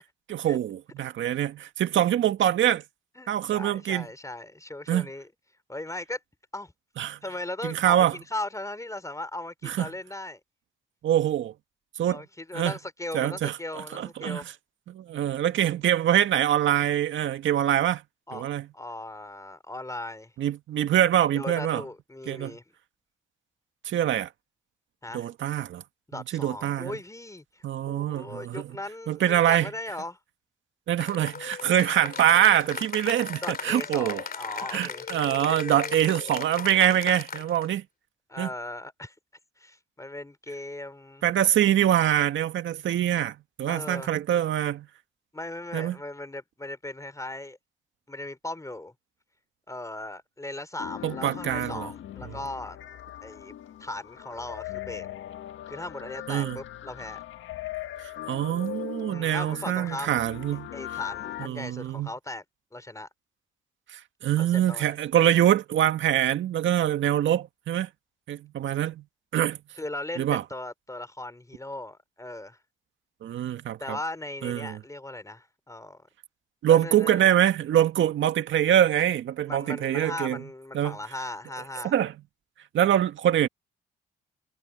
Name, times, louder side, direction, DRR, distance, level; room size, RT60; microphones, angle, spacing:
voice 1, 0.3-2.8 3.3-4.1 4.9-5.1 7.0-7.2 7.6-8.2 9.6-9.9 11.0-11.5 12.0-12.2 12.5-12.7 13.1-14.5 14.9-18.0 18.3-18.6 20.4-21.8 22.3-22.6 23.8-24.3 25.1-25.8 26.3-27.0 27.6-28.7 29.1-29.7 30.9-34.2 34.7-37.8 38.4-38.5 41.2-44.9 45.7-46.0 51.0-51.9 52.3-52.4 56.3-56.6 58.3-60.7 61.4-62.1 63.9-67.9 68.3-69.0 69.3-69.6 70.2-70.4 73.2-73.8 74.4-74.8 76.6-80.4 80.7-81.0 81.8-82.1 82.7-83.5, right 11 dB, 70° right, 1.9 m, -24 dB
voice 2, 3.2-5.3 5.7-6.2 6.5-6.7 7.2-10.4 12.1-14.5 18.3-20.3 21.3-22.6 25.0-25.3 26.1-30.2 33.4-35.1 38.3-39.1 39.6-41.2 43.7-44.1 45.3-47.6 48.1-48.9 49.7-52.8 53.2-55.1 55.7-57.2 59.1-60.2 60.7-62.4 62.7-63.1 64.4-65.0 69.8-72.6 73.8-76.1 76.7-77.3 79.5-81.9, left 2 dB, 15° left, 3.9 m, -38 dB
Cheering / Applause, 31.0-37.7, left 6 dB, 45° left, 3.0 m, -37 dB
sound 1, 50.8-61.5, left 12 dB, 70° left, 1.7 m, -39 dB
supercardioid pair, 55°, 21 cm